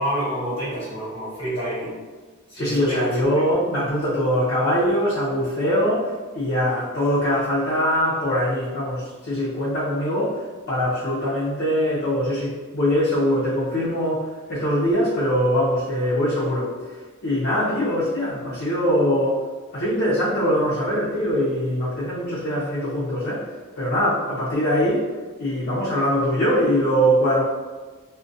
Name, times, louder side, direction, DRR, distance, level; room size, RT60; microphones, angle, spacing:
voice 1, 0.0-2.0 2.5-3.1, equal, 30° left, -11 dB, 1.1 m, -27 dB
voice 2, 2.5-19.5 19.7-27.4, equal, 50° left, -8 dB, 0.5 m, -22 dB
2.4 x 2.1 x 2.4 m, 1.4 s
head